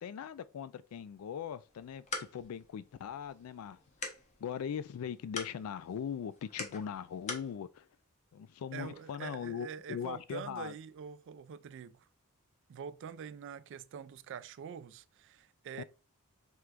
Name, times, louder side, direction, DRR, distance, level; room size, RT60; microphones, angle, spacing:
voice 1, 0.0-3.8 4.4-7.9 8.3-10.7 15.8-15.9, left 8 dB, 70° left, 0.3 m, -40 dB
sound 1, 1.7-7.5, left 3 dB, 30° left, 0.7 m, -45 dB
voice 2, 8.7-12.1 12.7-15.8, right 7 dB, 55° right, 0.3 m, -45 dB
4.5 x 3.3 x 2.4 m
head